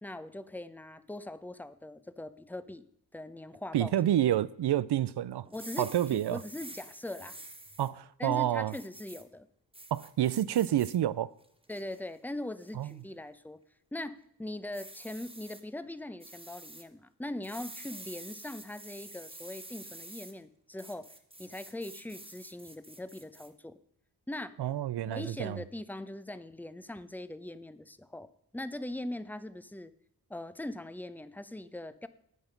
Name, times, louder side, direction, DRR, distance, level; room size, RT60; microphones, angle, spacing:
voice 1, 0.0-2.8 3.1-3.9 5.5-7.4 8.2-9.5 11.7-13.6 13.9-21.1 21.4-23.8 24.3-24.6 25.0-29.9 30.3-32.1, left 1 dB, 5° left, 0.7 m, -41 dB
voice 2, 3.7-5.5 5.8-6.4 7.8-8.7 9.9-11.3 12.7-12.9 24.6-25.6, right 12 dB, 80° right, 0.5 m, -28 dB
sound 1, 5.5-7.9 8.7-9.2 9.7-11.0 11.4-12.0 12.6-12.9 14.7-15.6 16.2-16.8 17.4-20.3 20.8-23.5, right 1 dB, 15° right, 1.7 m, -48 dB
10.0 x 8.9 x 5.2 m
cardioid pair, 45°, 40 cm